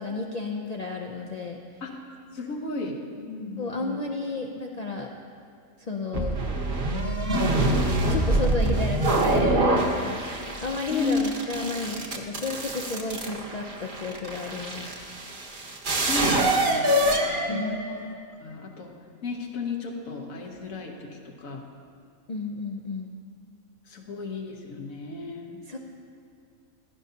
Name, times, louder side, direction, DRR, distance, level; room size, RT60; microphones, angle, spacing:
voice 1, 0.0-1.6 3.6-5.1 5.8-6.4 8.1-14.9 17.5-17.8 22.3-23.1 25.7-25.8, left 3 dB, 55° left, 1 dB, 0.4 m, -32 dB
voice 2, 2.3-4.0 10.9-11.2 16.0-18.1 18.4-18.9 19.2-21.6 23.9-25.6, left 4 dB, 85° left, 1 dB, 1.6 m, -34 dB
sound 1, 6.1-18.1, right 1 dB, 45° right, 1.0 m, -25 dB
15.5 x 11.5 x 2.8 m, 2.4 s
omnidirectional pair, 1.4 m